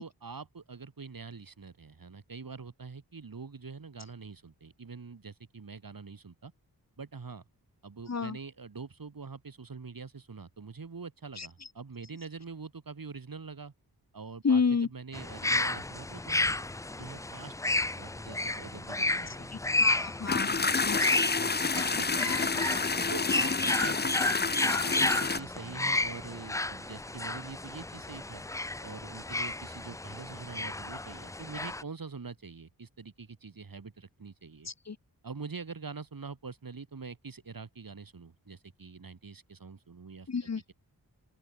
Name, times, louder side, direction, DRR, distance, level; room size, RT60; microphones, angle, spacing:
voice 1, 0.0-6.5 7.0-7.4 7.8-13.7 14.1-16.5 16.9-19.5 20.3-20.9 21.3-22.7 23.1-28.4 28.8-34.7 35.2-40.3, right 4 dB, 60° right, 7.0 m, -45 dB
voice 2, 8.1-8.4 11.4-11.7 14.4-14.9 19.3-21.0 34.6-35.0 40.3-40.6, left 5 dB, 40° left, 1.3 m, -31 dB
sound 1, 15.1-31.8, left 2 dB, 10° left, 0.4 m, -32 dB
sound 2, 20.3-25.4, left 4 dB, 25° left, 0.8 m, -29 dB
open air
cardioid pair, 60°, 39 cm